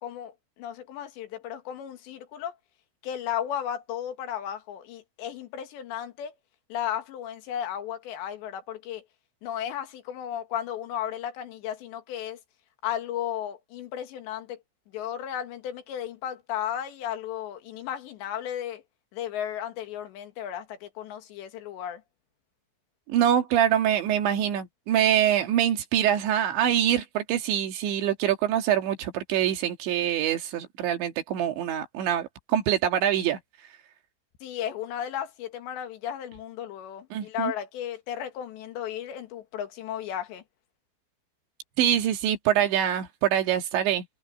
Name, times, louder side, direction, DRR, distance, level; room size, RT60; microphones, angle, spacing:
voice 1, 0.0-0.3 0.6-2.5 3.0-6.3 6.7-9.0 9.4-12.4 12.8-14.6 14.9-18.8 19.1-22.0 34.4-40.4, left 10 dB, 75° left, 3.9 m, -34 dB
voice 2, 23.1-33.4 37.1-37.5 41.8-44.1, right 10 dB, 75° right, 4.3 m, -24 dB
omnidirectional pair, 5.2 m